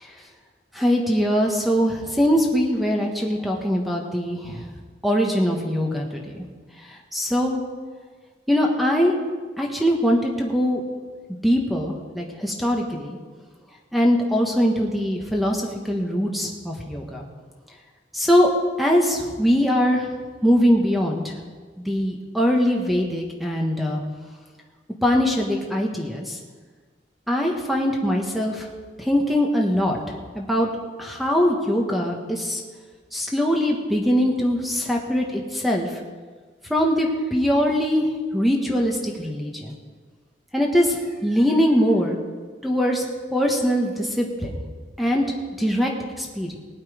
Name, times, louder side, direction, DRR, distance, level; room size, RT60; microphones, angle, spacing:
voice 1, 0.7-4.6 5.0-6.4 7.1-7.6 8.5-9.2 9.6-10.8 11.4-13.2 13.9-17.2 18.1-18.5 18.8-20.1 20.4-21.3 21.8-24.0 25.0-26.4 27.3-28.7 29.0-30.0 30.3-30.7 31.0-32.6 33.1-35.9 36.7-39.7 40.5-42.2 42.6-43.0 43.3-44.6 45.0-45.2 45.6-45.9 46.2-46.6, equal, ahead, 0 dB, 1.4 m, -22 dB
19.5 x 8.5 x 5.0 m, 1.5 s
head